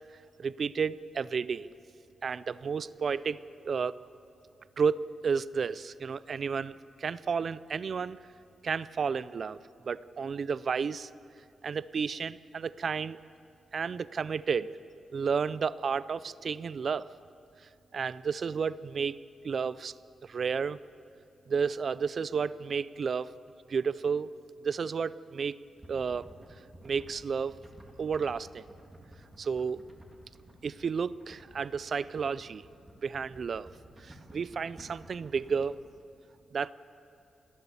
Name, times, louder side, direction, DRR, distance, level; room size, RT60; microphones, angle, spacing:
voice 1, 0.4-1.7 2.2-4.0 4.8-8.2 8.6-9.6 9.9-11.1 11.6-13.2 13.7-14.8 15.1-17.1 17.9-19.2 19.4-19.9 20.2-20.8 21.5-23.3 23.7-24.3 24.6-25.6 25.9-26.3 26.8-27.6 28.0-28.6 29.4-29.8 30.6-32.7 33.0-33.7 34.0-35.8 36.5-36.7, right 6 dB, 50° right, 18 dB, 0.4 m, -32 dB
sound 1, 25.8-35.9, right 1 dB, 15° right, 2.9 m, -53 dB
29.5 x 12.5 x 7.1 m, 2.5 s
cardioid pair, 120°, 0 cm